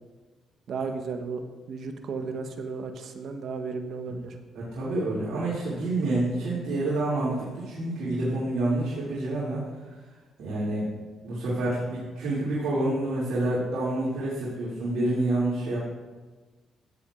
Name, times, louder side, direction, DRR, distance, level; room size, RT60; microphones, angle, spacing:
voice 1, 0.7-1.4 1.7-4.4, right 4 dB, 60° right, 5 dB, 0.9 m, -34 dB
voice 2, 4.5-9.9 10.4-10.9 11.2-15.8, right 2 dB, 80° right, -8 dB, 2.4 m, -28 dB
13.5 x 8.0 x 2.4 m, 1.3 s
cardioid pair, 90°, 0 cm